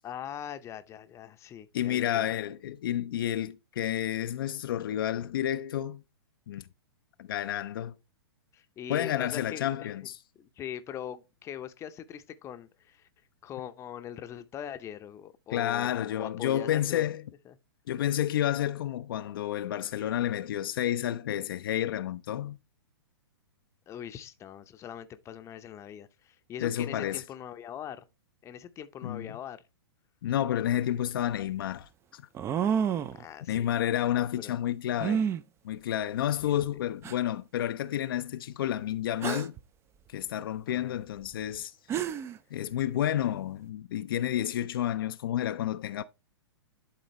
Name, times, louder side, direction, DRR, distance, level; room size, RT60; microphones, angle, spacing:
voice 1, 0.0-2.4 8.5-9.9 10.4-13.1 13.4-17.1 17.5-17.6 23.9-28.0 28.4-29.6 33.1-33.7 34.1-34.6 36.4-36.8 40.7-41.0, left 10 dB, 20° left, 0.7 m, -42 dB
voice 2, 1.7-6.0 6.5-6.7 7.2-7.9 8.9-10.2 15.5-17.2 17.9-22.6 26.6-27.2 29.0-29.3 30.2-32.3 33.5-35.2 35.6-39.5 40.1-41.7 42.5-46.0, left 11 dB, 60° left, 0.4 m, -30 dB
sound 1, 30.9-31.0 32.3-33.2 35.0-35.4 36.4-36.5 37.0-37.1 39.2-39.6 41.5-41.6 41.9-42.4, right 8 dB, 20° right, 0.4 m, -29 dB
11.0 x 3.9 x 3.1 m
hypercardioid pair, 115°, 13 cm